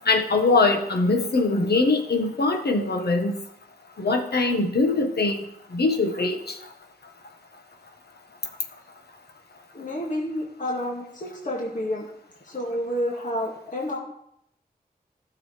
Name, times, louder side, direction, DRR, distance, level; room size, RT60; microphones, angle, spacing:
voice 1, 0.0-3.3 4.0-5.4 5.7-6.6, left 3 dB, 85° left, 3 dB, 1.5 m, -22 dB
voice 2, 9.7-12.1 12.4-14.0, equal, 50° left, -3 dB, 2.2 m, -29 dB
16.0 x 6.6 x 3.4 m, 0.74 s
wide cardioid pair, 65°, 16 cm